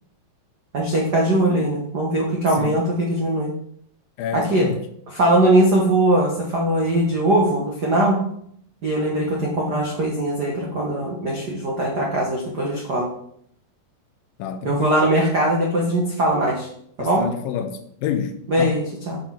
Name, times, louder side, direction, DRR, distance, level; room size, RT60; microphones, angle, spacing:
voice 1, 0.7-3.5 4.3-4.7 5.1-8.2 8.8-13.1 14.6-16.7 17.0-17.3 18.5-19.2, right 1 dB, 75° right, 0.9 m, -20 dB
voice 2, 4.2-4.8 14.4-15.0 17.0-18.8, left 8 dB, 80° left, 2.5 m, -28 dB
7.5 x 5.2 x 5.8 m
omnidirectional pair, 4.1 m